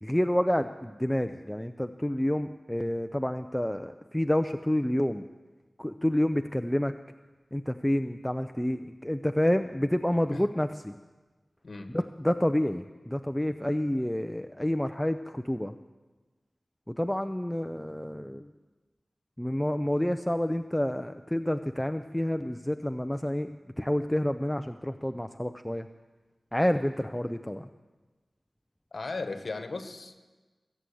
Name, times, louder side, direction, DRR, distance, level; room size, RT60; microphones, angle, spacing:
voice 1, 0.0-5.2 5.8-6.9 7.5-10.9 11.9-15.7 16.9-18.5 19.4-25.9 26.5-27.7, left 1 dB, 10° left, 8 dB, 0.5 m, -29 dB
voice 2, 28.9-30.2, left 3 dB, 65° left, 7 dB, 1.4 m, -36 dB
22.0 x 7.7 x 8.5 m, 1.3 s
wide cardioid pair, 75°, 0 cm